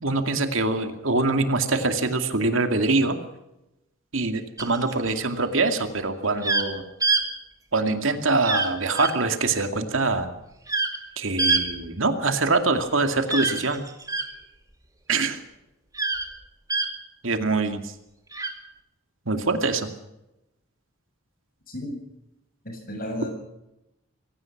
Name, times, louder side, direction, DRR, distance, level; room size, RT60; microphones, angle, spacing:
voice 1, 0.0-3.2 4.1-6.8 7.7-10.3 11.2-13.8 15.1-15.4 17.2-17.9 19.3-19.9, right 3 dB, 70° right, 7 dB, 2.4 m, -24 dB
sound 1, 4.6-5.1 6.4-6.7 7.0-7.2 8.4-8.7 8.9-9.1 10.7-11.0 11.4-11.6 13.3-14.3 15.9-16.3 16.7-16.9 18.3-18.5, right 3 dB, 15° right, 2.2 m, -24 dB
voice 2, 22.6-23.3, left 1 dB, 45° left, 4 dB, 7.5 m, -33 dB
24.5 x 17.5 x 6.0 m, 0.90 s
head